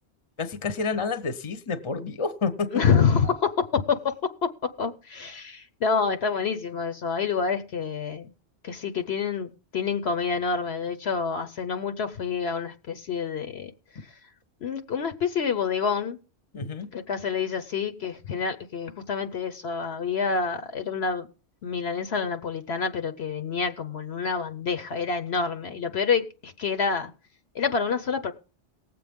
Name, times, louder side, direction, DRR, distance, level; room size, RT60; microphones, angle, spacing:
voice 1, 0.4-2.7 16.5-16.9, left 4 dB, 25° left, 0.9 m, -29 dB
voice 2, 2.7-4.0 4.8-8.3 8.6-13.7 14.6-16.2 16.9-21.3 21.6-27.1 27.5-28.3, left 5 dB, 60° left, 1.1 m, -27 dB
19.5 x 7.8 x 3.6 m
omnidirectional pair, 1.2 m